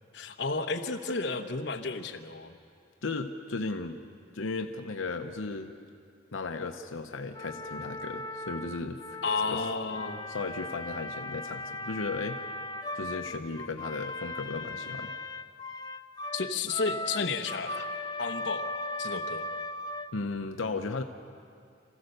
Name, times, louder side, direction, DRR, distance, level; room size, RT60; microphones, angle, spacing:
voice 1, 0.1-2.6 9.2-10.3 16.3-17.9 18.2-18.7 19.0-19.5, left 4 dB, 60° left, 5 dB, 1.0 m, -32 dB
voice 2, 3.0-4.0 4.3-5.7 6.3-9.2 9.5-9.6 10.3-12.4 12.9-15.1 20.1-21.0, left 3 dB, 85° left, 5 dB, 0.8 m, -35 dB
sound 1, 7.4-20.4, left 2 dB, 20° left, 0.5 m, -38 dB
27.0 x 15.0 x 6.7 m, 2.4 s
head